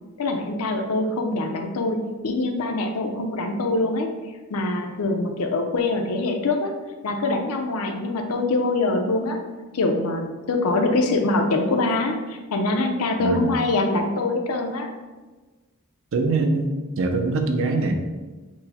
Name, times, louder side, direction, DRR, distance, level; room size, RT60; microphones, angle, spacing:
voice 1, 0.2-2.0 2.2-4.1 4.5-6.7 7.0-9.4 9.7-14.9, left 2 dB, 75° left, 4 dB, 0.5 m, -24 dB
voice 2, 13.2-13.5 16.1-18.0, right 3 dB, 60° right, 5 dB, 0.5 m, -23 dB
4.6 x 2.1 x 4.0 m, 1.3 s
head